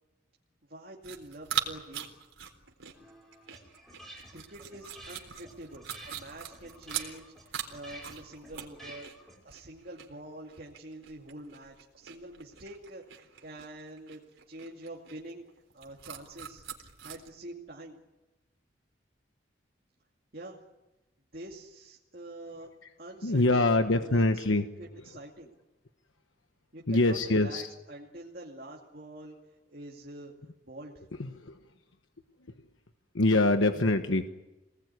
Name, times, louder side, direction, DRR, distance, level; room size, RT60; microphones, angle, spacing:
voice 1, 0.7-2.1 4.3-15.4 15.7-16.6 17.0-18.0 20.3-20.6 21.3-22.7 23.0-24.4 24.8-25.5 26.7-30.3 30.6-31.0, right 1 dB, 45° right, -2 dB, 2.5 m, -46 dB
sound 1, 1.0-17.3, right 9 dB, 85° right, 3.9 m, -41 dB
sound 2, 2.9-9.5, right 1 dB, ahead, 5.7 m, -51 dB
voice 2, 23.2-24.7 26.9-27.7 31.2-31.6 33.1-34.3, left 2 dB, 80° left, 7 dB, 1.2 m, -24 dB
27.5 x 19.5 x 9.7 m, 1.1 s
head